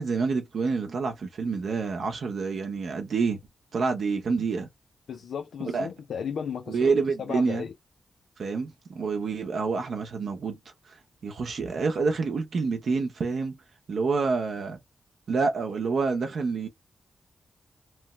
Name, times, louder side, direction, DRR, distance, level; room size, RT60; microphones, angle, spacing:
voice 1, 0.0-3.4 3.7-4.7 5.7-5.9 6.7-7.7 8.4-10.6 10.9-11.0 11.2-13.6 13.9-14.8 15.3-16.7, right 4 dB, 70° right, 0.7 m, -27 dB
voice 2, 5.1-6.9 7.2-7.7, left 7 dB, 85° left, 0.4 m, -34 dB
3.0 x 2.1 x 3.0 m
cardioid pair, 75°, 0 cm